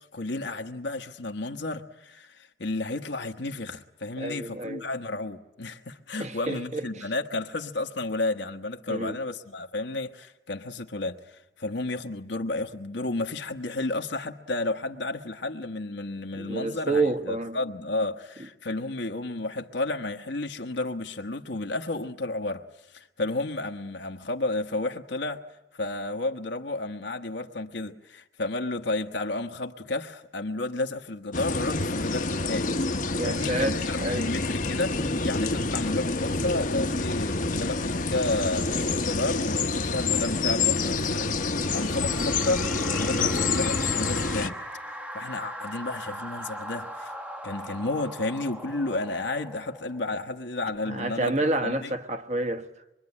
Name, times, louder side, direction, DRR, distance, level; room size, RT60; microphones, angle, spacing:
voice 1, 0.1-25.4 25.7-32.8 33.2-38.7 39.0-41.3 41.7-44.6 45.1-47.1 47.4-51.3 51.6-51.9, left 2 dB, 70° left, 1.3 m, -32 dB
voice 2, 4.2-4.8 6.2-7.1 8.9-9.2 16.3-17.6 33.2-34.3 50.8-52.7, right 2 dB, 40° right, 1.4 m, -29 dB
sound 1, 31.3-44.5, left 3 dB, 45° left, 1.0 m, -27 dB
sound 2, 40.9-50.5, equal, 10° right, 1.0 m, -40 dB
25.0 x 23.5 x 9.8 m
head